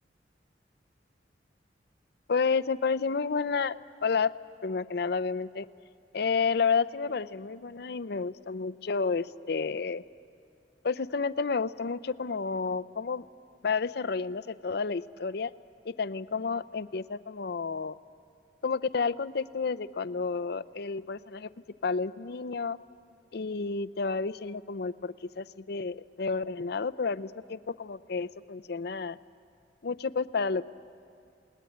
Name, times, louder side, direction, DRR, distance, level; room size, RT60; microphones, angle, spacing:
voice 1, 2.3-3.8 4.0-4.3 4.6-5.7 6.1-10.0 10.8-13.2 13.6-15.5 15.8-18.0 18.6-21.5 21.8-22.8 23.3-29.2 29.8-30.7, left 5 dB, 60° left, 15 dB, 0.6 m, -30 dB
29.0 x 19.5 x 9.4 m, 2.4 s
head